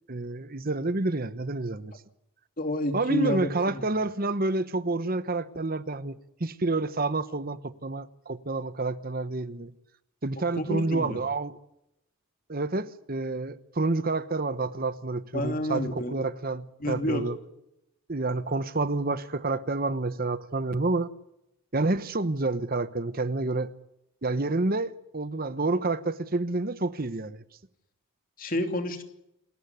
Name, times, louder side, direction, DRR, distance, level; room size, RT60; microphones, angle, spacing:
voice 1, 0.1-1.9 2.9-9.7 10.2-11.6 12.5-17.4 18.1-21.1 21.7-23.7 24.2-27.4, right 2 dB, 40° right, 1.0 m, -29 dB
voice 2, 2.6-3.8 10.6-11.2 15.3-16.1 16.8-17.2 28.4-29.0, left 1 dB, 40° left, 2.8 m, -29 dB
28.0 x 14.0 x 9.4 m
head